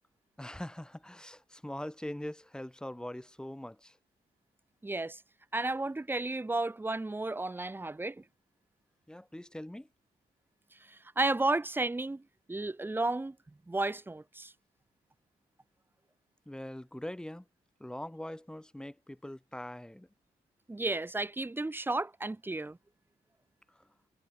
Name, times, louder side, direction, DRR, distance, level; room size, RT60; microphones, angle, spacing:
voice 1, 0.4-4.0 9.1-9.9 16.4-17.5 17.8-20.1 23.7-23.9, left 1 dB, 5° left, 5.0 m, -42 dB
voice 2, 4.8-5.2 5.5-8.2 10.9-12.2 12.5-13.4 13.7-14.5 20.7-22.8, right 2 dB, 15° right, 2.2 m, -33 dB
wide cardioid pair, 150°, 16 cm